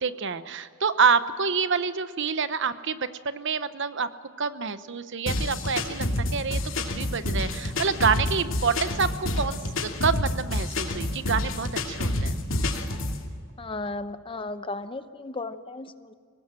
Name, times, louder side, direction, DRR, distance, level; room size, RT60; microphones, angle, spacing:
voice 1, 0.0-4.1 4.4-6.1 6.3-6.6 6.9-12.4, right 5 dB, 60° right, 12 dB, 1.0 m, -27 dB
sound 1, 5.3-13.2, left 1 dB, 65° left, 2.6 m, -28 dB
voice 2, 13.6-16.1, left 2 dB, 25° left, 11 dB, 0.8 m, -35 dB
24.0 x 19.0 x 7.7 m, 2.1 s
head